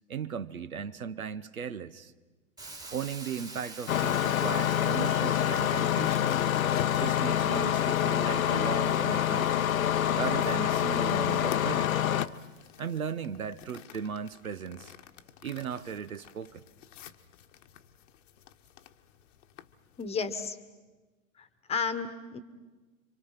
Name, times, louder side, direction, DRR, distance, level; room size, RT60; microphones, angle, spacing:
voice 1, 0.1-2.1 2.9-6.5 7.0-9.5 10.1-12.1 12.8-14.9 15.4-16.6, right 7 dB, 85° right, 1.0 m, -37 dB
Hiss, 2.6-12.5, right 2 dB, 10° right, 1.8 m, -50 dB
Engine starting, 3.9-12.3, left 10 dB, 80° left, 0.8 m, -26 dB
sound 1, 5.3-20.5, left 10 dB, 60° left, 1.2 m, -48 dB
voice 2, 20.0-20.6 21.4-22.4, left 5 dB, 15° left, 1.3 m, -33 dB
27.5 x 24.5 x 5.8 m
hypercardioid pair, 115°, 41 cm